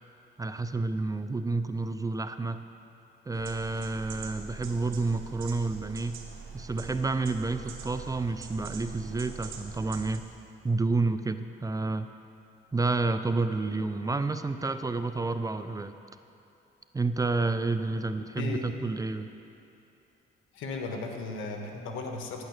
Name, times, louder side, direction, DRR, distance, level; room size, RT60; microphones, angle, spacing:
voice 1, 0.4-2.6 3.3-6.2 6.5-10.2 10.6-12.1 12.7-16.0 16.9-19.3, right 3 dB, 15° right, 10 dB, 0.4 m, -30 dB
sound 1, 3.3-10.2, right 5 dB, 85° right, 1.3 m, -43 dB
voice 2, 18.4-18.9 20.5-22.4, left 3 dB, 85° left, 3 dB, 1.3 m, -36 dB
10.0 x 8.9 x 6.6 m, 2.8 s
cardioid pair, 90°, 20 cm